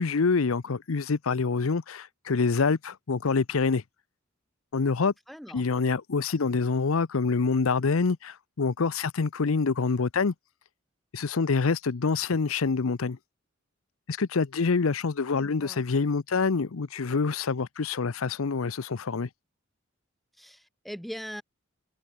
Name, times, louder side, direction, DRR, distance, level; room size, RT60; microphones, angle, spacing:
voice 1, 0.0-3.8 4.7-5.1 5.5-10.3 11.1-13.2 14.1-19.3, left 4 dB, 85° left, 0.7 m, -26 dB
voice 2, 5.3-5.6 15.3-15.8 20.4-21.4, equal, ahead, 2.4 m, -41 dB
head